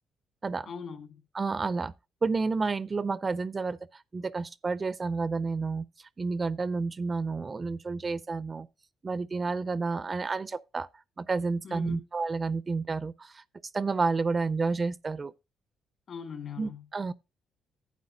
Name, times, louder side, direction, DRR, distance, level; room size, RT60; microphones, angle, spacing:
voice 1, 0.7-1.2 11.6-12.0 16.1-16.8, left 6 dB, 60° left, 1.9 m, -40 dB
voice 2, 1.3-1.9 2.2-5.9 6.2-8.7 9.0-10.9 11.2-13.4 13.7-15.3 16.6-17.1, right 4 dB, 30° right, 0.4 m, -30 dB
11.5 x 8.3 x 2.7 m
cardioid pair, 90°, 0 cm